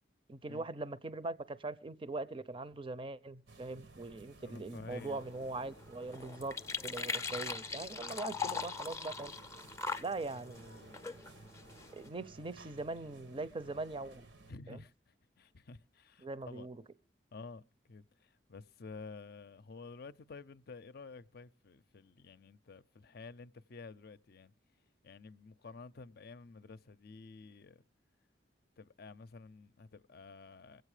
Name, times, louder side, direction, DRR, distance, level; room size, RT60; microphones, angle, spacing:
voice 1, 0.3-6.6 6.8-9.3 10.0-11.0 11.9-14.3 14.7-14.8 16.2-16.8, right 3 dB, 30° right, 0.6 m, -41 dB
sound 1, 3.5-14.5, right 3 dB, 90° right, 1.1 m, -57 dB
voice 2, 4.4-5.2 14.5-16.7 17.3-17.6 17.9-24.5 25.0-27.8 28.8-30.8, left 4 dB, 60° left, 0.6 m, -51 dB
sound 2, 4.9-12.1, left 5 dB, 15° left, 0.6 m, -42 dB
22.5 x 8.0 x 4.9 m
head